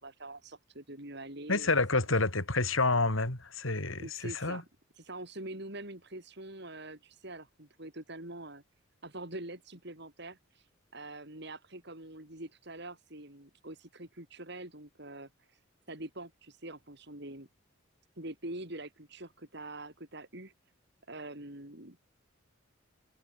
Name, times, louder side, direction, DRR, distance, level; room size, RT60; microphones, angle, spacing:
voice 1, 0.0-1.8 4.0-4.6 5.0-8.6 9.0-10.7 10.9-15.6 15.9-17.5 18.2-20.5 21.1-22.0, right 2 dB, 55° right, 5.5 m, -44 dB
voice 2, 1.5-4.6, left 3 dB, 85° left, 3.8 m, -29 dB
head